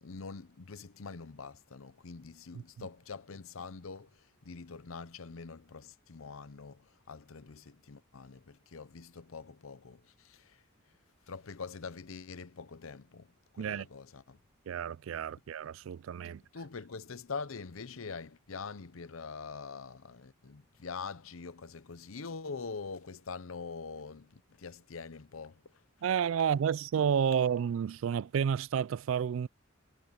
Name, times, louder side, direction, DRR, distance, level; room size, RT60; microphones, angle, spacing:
voice 1, 0.0-10.6 11.3-14.4 16.2-25.8, left 4 dB, 85° left, 0.8 m, -44 dB
voice 2, 14.7-16.4 26.0-29.5, right 7 dB, 70° right, 0.3 m, -30 dB
head